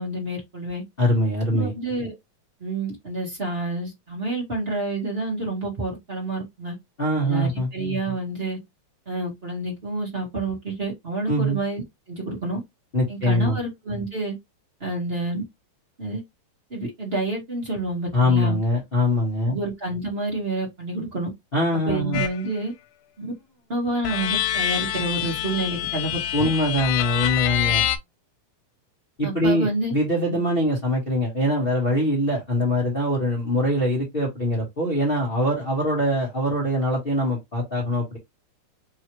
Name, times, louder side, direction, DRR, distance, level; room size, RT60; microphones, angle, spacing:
voice 1, 0.0-0.8 1.5-2.1 2.6-6.8 7.2-8.6 9.0-12.6 13.1-14.3 14.8-15.4 16.0-16.2 16.7-18.6 19.5-21.3 21.9-22.7 23.2-23.3 23.7-26.5 29.2-29.9, right 2 dB, 35° right, 0.9 m, -28 dB
voice 2, 1.0-1.7 7.0-7.7 11.3-11.6 12.9-13.6 18.1-19.6 21.5-22.2 26.3-27.8 29.2-38.2, left 1 dB, 40° left, 0.8 m, -23 dB
sound 1, 22.1-22.4 24.0-28.0, left 12 dB, 85° left, 2.1 m, -26 dB
4.7 x 3.2 x 3.0 m
omnidirectional pair, 3.5 m